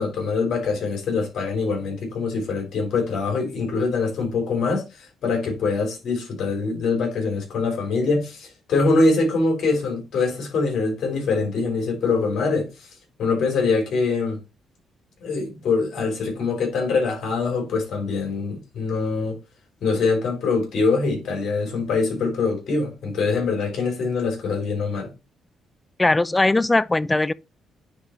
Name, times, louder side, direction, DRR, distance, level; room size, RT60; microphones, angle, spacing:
voice 1, 0.0-12.9 13.2-14.4 15.2-19.4 19.8-25.1, left 4 dB, 70° left, 3.5 m, -24 dB
voice 2, 26.0-27.3, left 2 dB, 15° left, 0.4 m, -19 dB
9.6 x 3.9 x 3.1 m
cardioid pair, 90°, 0 cm